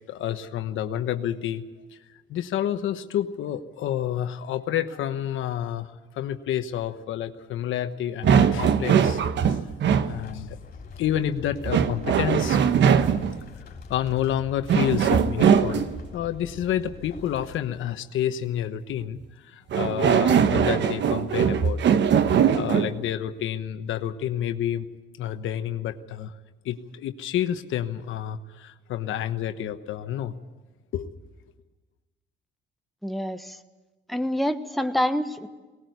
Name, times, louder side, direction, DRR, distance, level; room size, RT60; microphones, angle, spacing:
voice 1, 0.1-1.6 1.9-2.0 2.3-9.2 9.5-9.6 10.1-10.6 11.0-12.6 13.9-21.8 22.5-24.9 25.2-26.3 26.6-30.4 30.9-31.1, left 10 dB, 80° left, 9 dB, 1.2 m, -29 dB
sound 1, 8.2-10.1 11.6-13.4 14.7-16.0 19.7-22.9, right 7 dB, 65° right, 1.1 m, -21 dB
sound 2, 10.0-17.6, left 5 dB, 55° left, 3.5 m, -43 dB
voice 2, 33.0-33.6 34.1-35.5, left 1 dB, ahead, 7 dB, 1.3 m, -26 dB
19.0 x 19.0 x 9.5 m, 1.2 s
cardioid pair, 90°, 20 cm